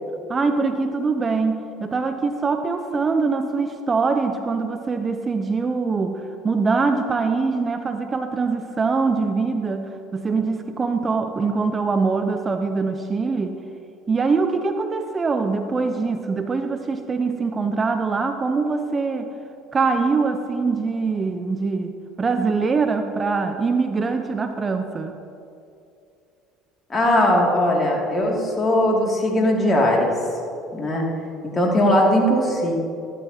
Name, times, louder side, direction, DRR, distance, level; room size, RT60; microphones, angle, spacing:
voice 1, 0.3-13.6 14.1-19.3 19.7-25.1, right 4 dB, 30° right, 7 dB, 0.7 m, -23 dB
voice 2, 26.9-30.1 30.7-31.1 31.5-32.7, left 1 dB, 30° left, -2 dB, 2.5 m, -19 dB
14.0 x 11.0 x 2.9 m, 2.6 s
hypercardioid pair, 65°, 0 cm